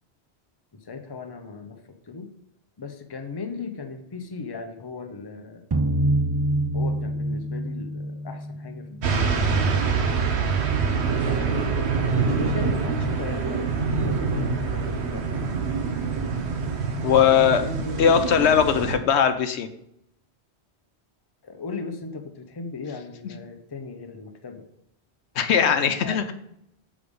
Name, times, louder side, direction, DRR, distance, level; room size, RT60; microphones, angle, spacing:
voice 1, 0.8-1.8 2.0-2.3 2.8-5.6 6.7-9.7 11.1-15.6 17.1-18.8 21.4-24.6 25.7-26.2, left 4 dB, 25° left, 6 dB, 0.7 m, -37 dB
sound 1, 5.7-8.8, right 1 dB, 30° right, 0.4 m, -25 dB
sound 2, 9.0-18.9, right 5 dB, 75° right, 1.2 m, -25 dB
voice 2, 17.0-17.6 18.0-19.7 25.4-26.3, left 8 dB, 85° left, 8 dB, 1.0 m, -20 dB
6.7 x 5.0 x 5.3 m, 0.76 s
omnidirectional pair, 1.1 m